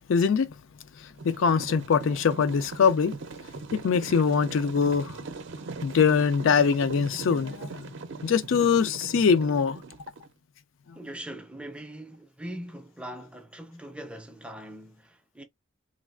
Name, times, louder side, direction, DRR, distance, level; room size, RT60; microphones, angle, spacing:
voice 1, 0.1-0.5 1.0-3.2 3.7-5.1 5.8-7.8 8.2-9.8, left 6 dB, 70° left, 0.4 m, -23 dB
sound 1, 1.2-10.3, right 3 dB, 60° right, 0.5 m, -40 dB
voice 2, 10.9-15.4, right 1 dB, 5° right, 0.4 m, -41 dB
3.3 x 2.3 x 2.3 m
head